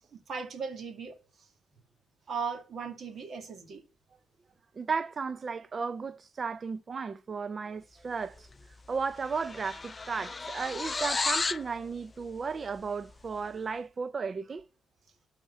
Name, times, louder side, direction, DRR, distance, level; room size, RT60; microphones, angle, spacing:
voice 1, 0.1-1.5 2.3-3.8, right 5 dB, 55° right, 2.2 m, -38 dB
voice 2, 4.8-8.5 8.9-14.7, right 5 dB, 35° right, 0.5 m, -34 dB
sound 1, 8.5-8.7 9.0-11.7, left 4 dB, 30° left, 0.5 m, -33 dB
12.5 x 4.4 x 7.7 m
cardioid pair, 90°, 0 cm